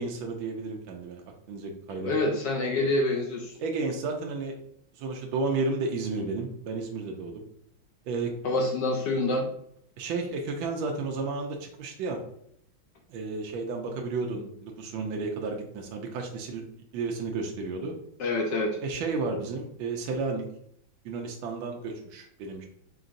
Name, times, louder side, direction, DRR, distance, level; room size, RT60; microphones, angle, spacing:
voice 1, 0.0-2.1 3.6-4.5 4.9-7.4 8.0-8.3 10.0-12.2 13.1-16.6 16.9-17.9 18.8-20.5 21.0-22.7, right 3 dB, 75° right, 2 dB, 1.3 m, -32 dB
voice 2, 2.0-3.6 8.4-9.5 18.2-18.8, left 2 dB, 70° left, 1 dB, 1.1 m, -26 dB
3.9 x 3.8 x 2.5 m, 0.69 s
omnidirectional pair, 2.3 m